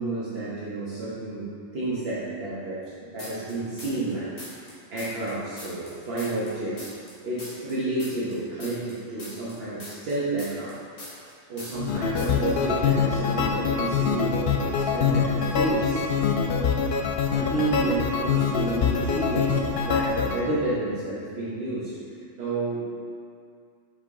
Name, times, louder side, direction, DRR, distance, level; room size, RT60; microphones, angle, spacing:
voice 1, 0.0-4.6 4.9-6.9 7.2-11.1 11.5-16.0 17.3-22.9, right 2 dB, 55° right, -9 dB, 1.2 m, -30 dB
sound 1, 3.2-4.1 4.4-7.1 7.4-11.3 11.6-11.9 12.2-12.5, left 1 dB, 85° left, 2.1 m, -42 dB
sound 2, 11.8-20.4, left 6 dB, 60° left, 0.7 m, -24 dB
5.9 x 5.0 x 3.6 m, 2.3 s
omnidirectional pair, 1.3 m